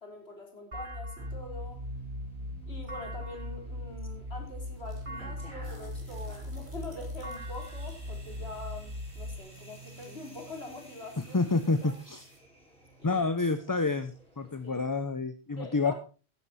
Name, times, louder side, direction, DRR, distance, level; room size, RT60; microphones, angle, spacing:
voice 1, 0.0-1.8 2.7-11.5 11.8-11.9 13.0-13.2 14.6-14.9 15.5-15.9, left 2 dB, 80° left, 2 dB, 3.8 m, -44 dB
sound 1, 0.7-9.4, left 1 dB, 50° right, 2.7 m, -39 dB
sound 2, 1.2-14.8, right 4 dB, 5° left, 5.5 m, -50 dB
sound 3, 4.3-12.4, right 1 dB, 30° right, 3.7 m, -60 dB
voice 2, 11.3-12.3 13.0-15.9, left 3 dB, 20° left, 11 dB, 0.6 m, -28 dB
14.0 x 10.5 x 4.2 m, 0.35 s
omnidirectional pair, 1.1 m